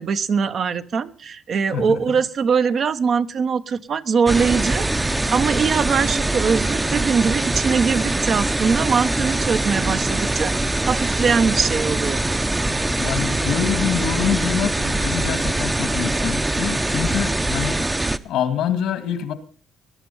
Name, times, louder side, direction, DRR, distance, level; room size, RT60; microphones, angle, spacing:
voice 1, 0.0-10.5 10.8-12.3, right 6 dB, 55° right, 1.0 m, -22 dB
voice 2, 1.7-2.2 12.6-17.9 18.2-19.3, left 9 dB, 90° left, 2.0 m, -26 dB
sound 1, 4.3-18.2, right 2 dB, 15° right, 0.8 m, -23 dB
20.5 x 10.5 x 5.6 m
cardioid pair, 90°, 0 cm